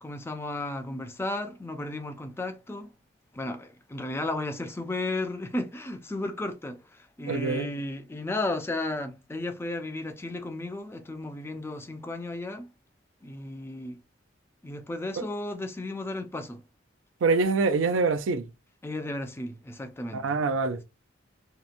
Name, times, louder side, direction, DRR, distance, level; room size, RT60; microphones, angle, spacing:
voice 1, 0.0-2.9 3.3-12.7 13.2-14.0 14.6-16.6 18.8-20.2, left 2 dB, 10° left, 0.3 m, -34 dB
voice 2, 7.3-7.7 15.2-15.3 17.2-18.5 20.1-20.8, right 4 dB, 80° right, 0.4 m, -25 dB
2.8 x 2.1 x 2.4 m
head